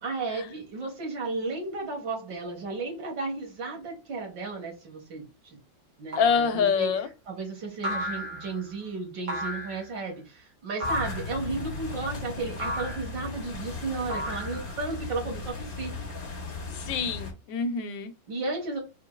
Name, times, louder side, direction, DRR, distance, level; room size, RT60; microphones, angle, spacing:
voice 1, 0.0-5.2 6.0-6.9 7.3-15.9 18.3-18.8, right 3 dB, 75° right, 2.3 m, -34 dB
sound 1, 6.1-6.5 7.8-8.6 9.3-9.9 10.8-11.3 12.6-13.1 14.1-14.8, equal, 45° right, 1.5 m, -33 dB
voice 2, 6.2-7.1 16.7-18.1, left 6 dB, 80° left, 1.3 m, -26 dB
sound 2, 10.8-17.3, left 4 dB, 30° left, 1.3 m, -37 dB
4.5 x 3.7 x 2.2 m
omnidirectional pair, 2.0 m